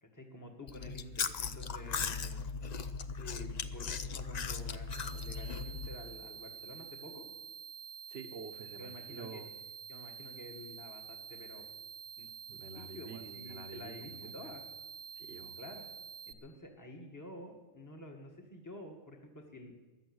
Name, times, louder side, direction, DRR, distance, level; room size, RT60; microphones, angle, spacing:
voice 1, 0.0-2.8 3.1-7.3 8.8-9.4 9.9-11.6 12.2-12.3 12.8-14.6 15.6-15.9 16.2-19.7, left 1 dB, 15° left, 2 dB, 1.7 m, -50 dB
Chewing mastication, 0.7-6.0, left 5 dB, 45° left, 0.6 m, -38 dB
sound 1, 4.9-16.3, right 7 dB, 75° right, 1.9 m, -48 dB
voice 2, 8.1-9.5 12.5-14.3 15.2-15.5, right 4 dB, 55° right, 7 dB, 1.4 m, -48 dB
15.0 x 11.0 x 8.0 m, 1.2 s
omnidirectional pair, 1.3 m